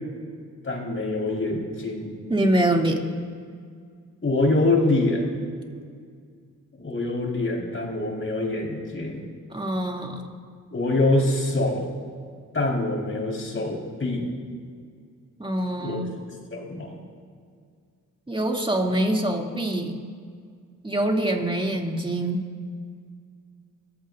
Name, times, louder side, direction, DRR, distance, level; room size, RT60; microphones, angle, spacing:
voice 1, 0.6-2.1 4.2-5.2 6.8-9.2 10.7-11.9 12.5-14.3 15.8-16.0 16.5-17.0, left 2 dB, 40° left, -1 dB, 4.7 m, -25 dB
voice 2, 2.3-3.0 9.5-10.3 15.4-16.0 18.3-19.9 20.8-22.4, right 1 dB, 15° right, 0 dB, 2.8 m, -24 dB
25.5 x 15.5 x 2.7 m, 2.1 s
cardioid pair, 60°, 33 cm